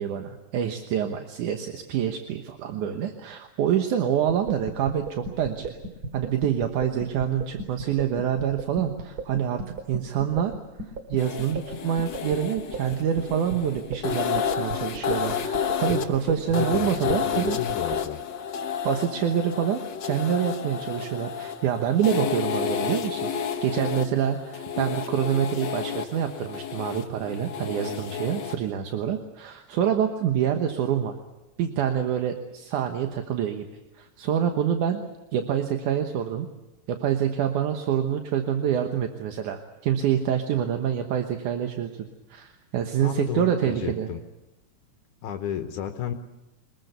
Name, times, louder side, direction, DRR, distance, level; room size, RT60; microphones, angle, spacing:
voice 1, 0.0-5.8 6.1-10.5 11.1-17.6 18.8-31.1 31.6-33.7 34.0-36.5 36.9-44.1, right 9 dB, 75° right, 5 dB, 2.7 m, -26 dB
sound 1, 4.3-18.0, right 3 dB, 35° right, 2.4 m, -35 dB
sound 2, 11.2-28.7, left 8 dB, 55° left, 1.3 m, -31 dB
voice 2, 16.6-18.2 43.0-44.2 45.2-46.1, left 9 dB, 75° left, 6 dB, 2.5 m, -32 dB
23.5 x 21.0 x 8.1 m, 1.0 s
omnidirectional pair, 3.6 m